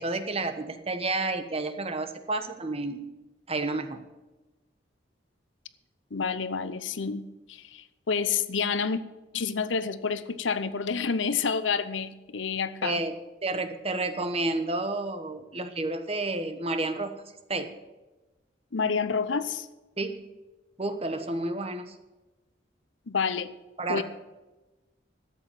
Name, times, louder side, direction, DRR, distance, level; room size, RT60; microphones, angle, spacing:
voice 1, 0.0-3.1 3.5-4.0 12.8-13.1 13.4-17.1 17.5-17.7 20.0-20.2 20.8-21.9 23.8-24.0, right 2 dB, 30° right, 8 dB, 1.1 m, -30 dB
voice 2, 6.1-9.0 9.3-13.0 18.7-19.7 23.1-23.5 23.9-24.0, left 5 dB, 90° left, 14 dB, 0.8 m, -29 dB
13.0 x 8.0 x 7.3 m, 1.1 s
head